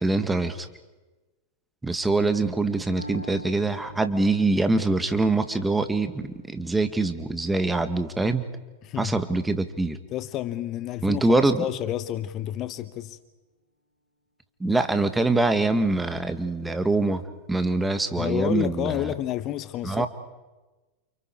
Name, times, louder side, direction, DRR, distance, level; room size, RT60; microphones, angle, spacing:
voice 1, 0.0-0.7 1.8-8.4 9.0-10.0 11.0-11.7 14.6-17.2 17.5-19.1 19.8-20.1, right 2 dB, 10° right, 1.7 m, -24 dB
Piano, 3.0-10.9, right 1 dB, 85° left, 4.8 m, -48 dB
voice 2, 8.8-9.2 10.1-13.2 18.1-20.1, left 13 dB, 35° left, 1.0 m, -30 dB
29.5 x 28.5 x 4.8 m
figure-of-eight pair, 90°, 0 cm